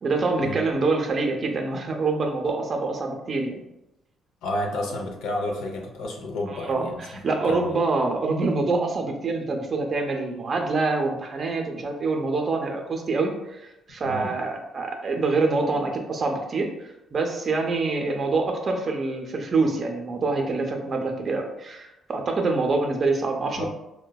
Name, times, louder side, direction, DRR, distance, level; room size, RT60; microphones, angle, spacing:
voice 1, 0.0-3.6 6.5-23.7, right 3 dB, 45° right, 2 dB, 0.5 m, -26 dB
voice 2, 4.4-7.2 7.5-7.7 14.0-14.3 23.5-23.7, left 1 dB, 90° left, 2 dB, 0.5 m, -31 dB
3.7 x 2.1 x 2.2 m, 0.92 s
cardioid pair, 90°, 0 cm